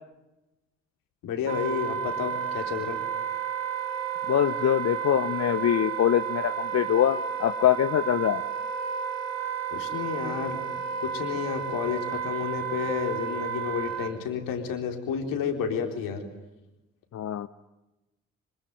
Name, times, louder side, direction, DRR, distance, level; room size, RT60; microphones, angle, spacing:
voice 1, 1.2-3.0 9.7-10.6 11.0-16.2, left 7 dB, 60° left, 5 dB, 4.3 m, -31 dB
Wind instrument woodwind instrument, 1.5-14.1, right 8 dB, 75° right, 2.4 m, -32 dB
voice 2, 4.3-8.4 17.1-17.5, left 10 dB, 40° left, 13 dB, 1.0 m, -24 dB
26.0 x 23.5 x 9.5 m, 0.99 s
figure-of-eight pair, 45°, 38 cm